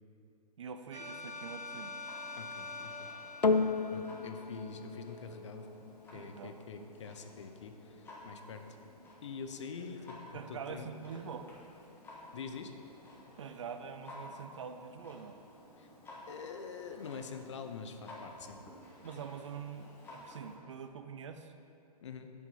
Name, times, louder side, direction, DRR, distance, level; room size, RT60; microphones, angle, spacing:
voice 1, 0.6-2.0 6.1-6.9 10.3-11.5 13.4-15.4 19.0-21.5, right 6 dB, 50° right, 8 dB, 0.6 m, -45 dB
sound 1, 0.9-4.8, left 3 dB, 85° right, 1.4 m, -45 dB
Clock, 2.0-20.6, left 1 dB, 10° left, 1.3 m, -54 dB
voice 2, 2.4-3.1 3.9-5.7 6.1-8.7 9.2-10.2 10.5-10.9 12.3-12.7 15.8-15.9 16.3-18.6 22.0-22.3, left 5 dB, 45° left, 7 dB, 0.7 m, -45 dB
sound 2, 3.4-12.0 12.7-12.8, left 4 dB, 80° left, 0.5 m, -37 dB
8.2 x 7.2 x 5.6 m, 2.6 s
figure-of-eight pair, 120°, 20 cm